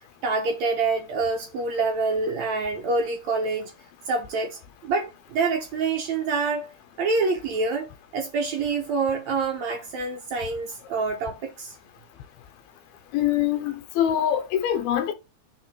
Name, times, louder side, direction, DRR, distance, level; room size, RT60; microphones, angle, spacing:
voice 1, 0.2-3.7 4.1-6.7 7.0-7.9 8.1-11.8, right 4 dB, 65° right, 1.8 m, -26 dB
voice 2, 13.1-15.1, left 10 dB, 80° left, 2.7 m, -24 dB
5.3 x 4.5 x 4.3 m
omnidirectional pair, 4.4 m